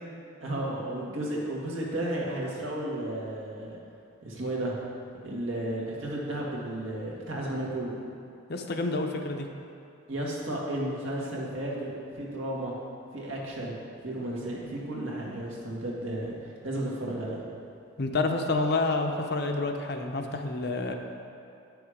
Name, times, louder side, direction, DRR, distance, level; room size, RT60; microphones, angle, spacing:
voice 1, 0.4-3.8 4.2-4.8 5.2-8.0 10.1-12.7 13.1-13.7 14.0-17.4, right 1 dB, 80° right, -4 dB, 2.0 m, -33 dB
voice 2, 8.5-9.5 18.0-20.9, left 3 dB, 55° left, 4 dB, 0.7 m, -28 dB
9.8 x 6.9 x 5.1 m, 2.6 s
head